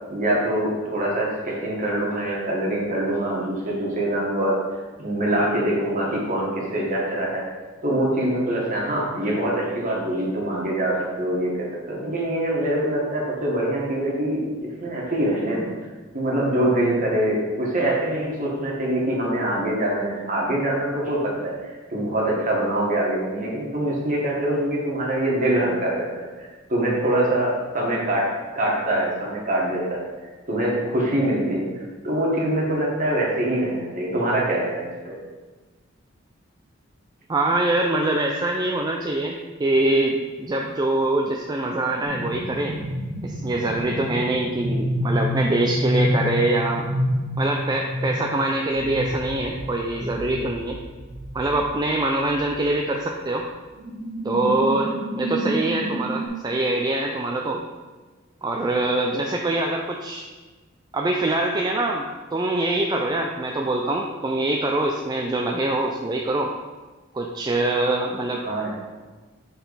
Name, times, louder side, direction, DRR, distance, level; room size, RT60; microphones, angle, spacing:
voice 1, 0.1-4.6 5.0-7.4 7.8-15.7 16.1-28.3 28.5-30.1 30.5-35.1 68.4-68.7, right 1 dB, 40° right, -3 dB, 1.5 m, -24 dB
voice 2, 37.3-42.8 43.2-46.8 47.4-50.8 51.3-53.4 54.2-57.6 58.4-60.3 60.9-62.1 62.3-66.5 67.1-68.4, right 2 dB, 20° right, 0 dB, 0.4 m, -24 dB
sound 1, 42.0-51.8 52.1-52.4 53.8-56.3, equal, 75° right, 1.8 m, -28 dB
6.6 x 4.0 x 4.1 m, 1.3 s
head